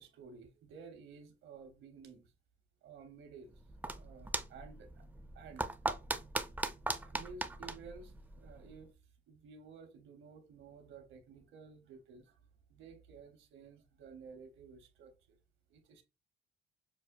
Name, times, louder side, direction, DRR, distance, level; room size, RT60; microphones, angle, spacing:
voice 1, 0.0-2.3 2.8-3.6 4.0-5.0 5.3-5.8 7.0-8.9 9.3-12.4 12.7-15.4 15.7-16.0, right 5 dB, 85° right, 0.9 m, -53 dB
sound 1, 3.5-8.9, right 2 dB, 10° right, 0.4 m, -40 dB
6.2 x 2.2 x 2.4 m
cardioid pair, 90°, 20 cm